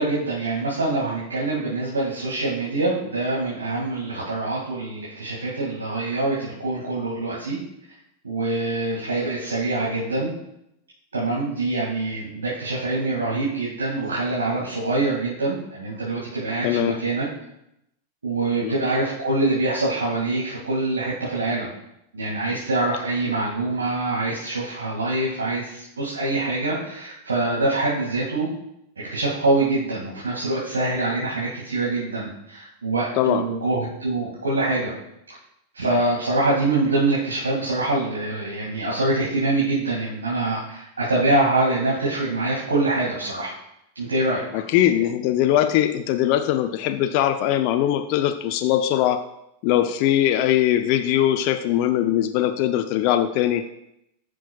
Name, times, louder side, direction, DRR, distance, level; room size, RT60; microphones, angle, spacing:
voice 1, 0.0-7.6 8.2-10.3 11.1-17.3 18.2-21.7 22.1-28.5 29.0-34.9 35.3-35.4 35.7-43.5 44.0-44.6, right 2 dB, 85° right, -6 dB, 2.2 m, -24 dB
voice 2, 16.6-17.0 18.6-18.7 33.2-33.5 44.5-49.3 49.6-53.7, left 12 dB, 50° left, 8 dB, 0.5 m, -21 dB
14.5 x 6.1 x 2.4 m, 0.82 s
figure-of-eight pair, 95°, 0 cm